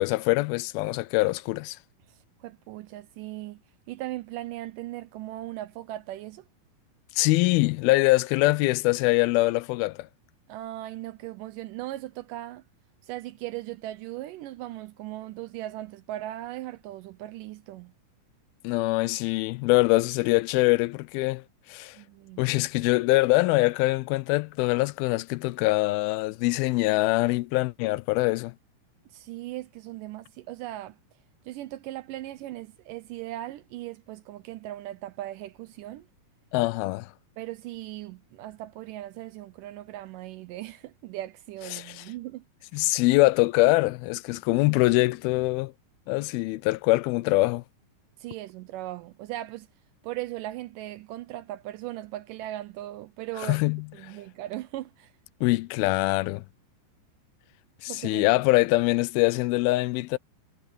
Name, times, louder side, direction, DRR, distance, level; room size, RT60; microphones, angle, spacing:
voice 1, 0.0-1.8 7.2-10.1 18.6-21.4 21.7-22.0 22.4-28.5 36.5-37.1 41.7-42.0 42.7-45.7 46.1-47.6 53.4-53.9 55.4-56.4 57.8-60.2, left 21 dB, 85° left, 2.4 m, -23 dB
voice 2, 2.4-3.6 3.9-6.4 10.5-12.6 13.0-17.9 22.0-22.5 29.1-31.0 31.5-36.1 37.4-42.4 42.7-42.9 48.2-49.7 50.0-53.6 53.9-55.1 57.9-58.3, right 15 dB, 80° right, 2.0 m, -38 dB
omnidirectional pair, 4.3 m